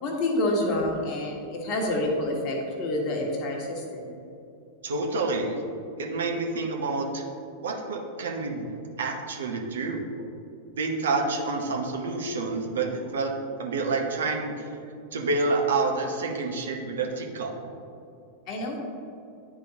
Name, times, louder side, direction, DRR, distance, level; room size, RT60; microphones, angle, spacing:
voice 1, 0.0-4.1 18.5-18.8, left 1 dB, 40° left, 0 dB, 1.2 m, -28 dB
voice 2, 4.8-5.6 6.0-7.2 7.6-8.7 9.0-10.3 10.8-13.3 13.6-14.5 15.1-17.5, right 3 dB, 65° right, 1 dB, 0.9 m, -28 dB
10.5 x 4.0 x 2.8 m, 2.6 s
figure-of-eight pair, 90°, 0 cm